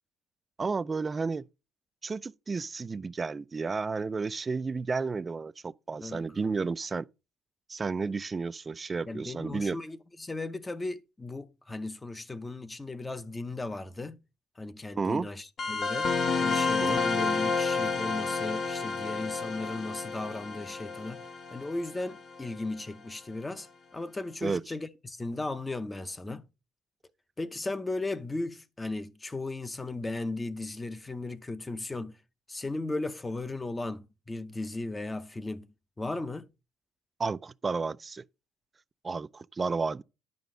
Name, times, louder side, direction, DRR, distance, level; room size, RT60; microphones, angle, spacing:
voice 1, 0.6-1.5 2.0-7.1 7.7-9.8 15.0-15.3 16.8-17.0 24.4-24.6 37.2-38.2 39.0-40.0, right 4 dB, 25° right, 0.4 m, -32 dB
voice 2, 6.0-6.6 9.1-14.2 14.6-16.1 16.4-21.2 21.5-26.5 27.4-32.2 32.5-35.7 36.0-36.5, left 2 dB, 15° left, 0.7 m, -36 dB
sound 1, 15.6-22.7, left 4 dB, 45° left, 0.9 m, -30 dB
11.0 x 5.2 x 3.7 m
cardioid pair, 110°, 0 cm